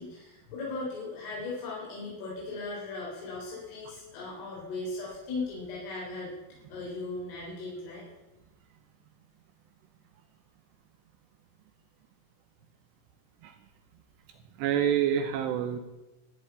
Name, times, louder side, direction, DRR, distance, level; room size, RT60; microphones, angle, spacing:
voice 1, 0.0-6.3 6.7-8.0, left 3 dB, 75° left, -5 dB, 6.0 m, -37 dB
voice 2, 14.6-15.8, right 9 dB, 75° right, 7 dB, 2.7 m, -27 dB
13.0 x 7.1 x 9.6 m, 1.0 s
omnidirectional pair, 5.7 m